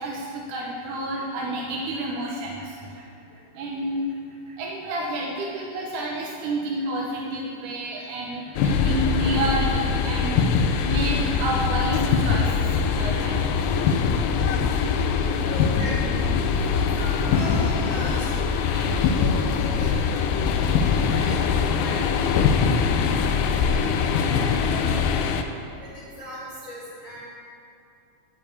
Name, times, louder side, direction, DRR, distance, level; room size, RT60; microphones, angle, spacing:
voice 1, 0.0-3.1 3.5-13.8 14.9-15.5 22.8-23.6 24.0-24.1, right 1 dB, 75° right, -1 dB, 2.0 m, -30 dB
sound 1, 8.6-25.4, left 6 dB, 80° left, 2.5 m, -22 dB
voice 2, 15.4-16.2 16.7-22.5 23.3-25.1 25.8-27.2, left 1 dB, 50° left, -8 dB, 1.5 m, -38 dB
13.0 x 4.6 x 8.4 m, 2.6 s
omnidirectional pair, 4.6 m